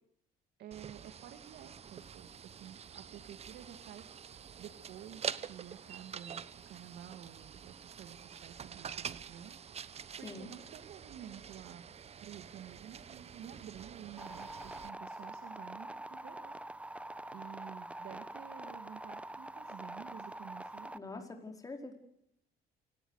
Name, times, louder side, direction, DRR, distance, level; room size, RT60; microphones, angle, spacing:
voice 1, 0.6-11.8 12.2-17.1 17.3-21.2, right 10 dB, 70° right, 8 dB, 2.4 m, -51 dB
sound 1, 0.7-14.9, right 7 dB, 40° right, 1.0 m, -46 dB
sound 2, 14.2-21.0, right 1 dB, 5° right, 1.1 m, -45 dB
voice 2, 20.9-22.0, left 3 dB, 20° left, 4 dB, 4.9 m, -44 dB
28.0 x 18.0 x 6.6 m, 0.76 s
cardioid pair, 110°, 17 cm